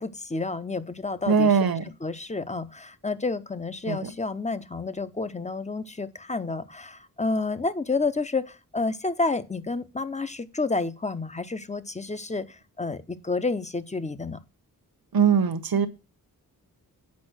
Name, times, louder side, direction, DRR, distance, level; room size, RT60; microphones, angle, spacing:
voice 1, 0.0-1.5 2.0-14.4, left 3 dB, 20° left, 0.7 m, -30 dB
voice 2, 1.3-1.8 3.9-4.1 15.1-15.9, right 6 dB, 75° right, 1.1 m, -21 dB
8.5 x 5.4 x 6.2 m
wide cardioid pair, 120°, 36 cm